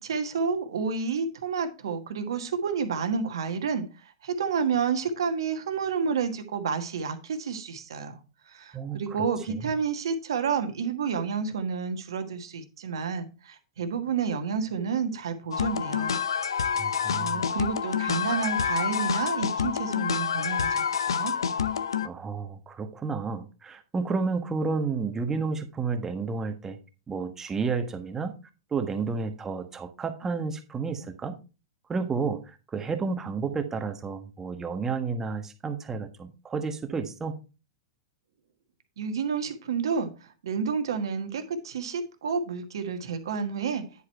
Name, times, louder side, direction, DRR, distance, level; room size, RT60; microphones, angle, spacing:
voice 1, 0.0-3.8 4.2-8.2 8.5-16.2 17.1-21.3 39.0-43.8, right 6 dB, 75° right, 1.4 m, -30 dB
sound 1, 15.5-22.1, left 7 dB, 85° left, 0.6 m, -27 dB
voice 2, 16.8-17.4 22.0-26.8 27.1-28.3 28.7-31.4 31.9-37.3, right 4 dB, 20° right, 1.3 m, -31 dB
10.0 x 4.7 x 4.4 m
hypercardioid pair, 115°, 2 cm